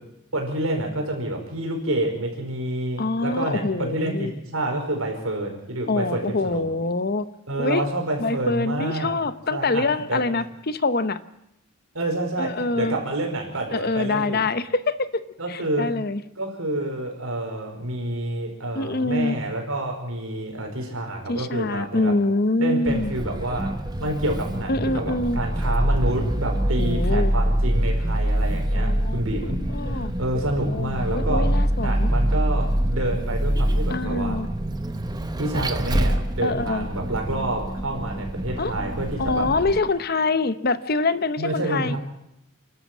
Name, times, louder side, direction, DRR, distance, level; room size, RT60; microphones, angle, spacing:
voice 1, 0.3-6.6 7.5-9.1 9.5-10.2 11.9-14.4 15.4-16.0 16.4-22.1 22.6-23.7 24.0-31.5 31.8-34.4 35.4-39.5 41.4-42.0, right 1 dB, 75° right, 3 dB, 5.0 m, -28 dB
voice 2, 3.0-4.3 5.9-7.2 7.6-7.8 8.2-11.2 12.4-13.0 13.7-15.2 15.5-16.2 18.7-19.4 21.3-23.1 24.7-25.4 26.8-27.3 28.7-29.2 29.5-30.1 30.7-32.1 33.9-34.5 36.4-36.9 38.6-38.7 39.2-42.0, left 3 dB, 45° left, 13 dB, 0.8 m, -25 dB
Vehicle, 22.9-39.8, right 1 dB, 20° right, 0.9 m, -25 dB
29.0 x 12.5 x 7.4 m, 0.83 s
head